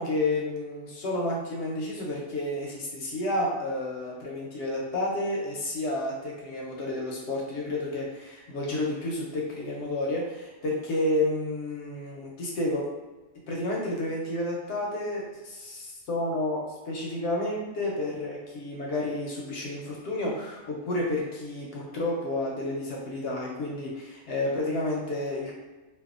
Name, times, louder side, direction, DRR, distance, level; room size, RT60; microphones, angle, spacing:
voice 1, 0.0-12.8 13.5-25.5, left 1 dB, 65° left, -3 dB, 0.7 m, -30 dB
2.6 x 2.2 x 2.4 m, 1.2 s
omnidirectional pair, 1.4 m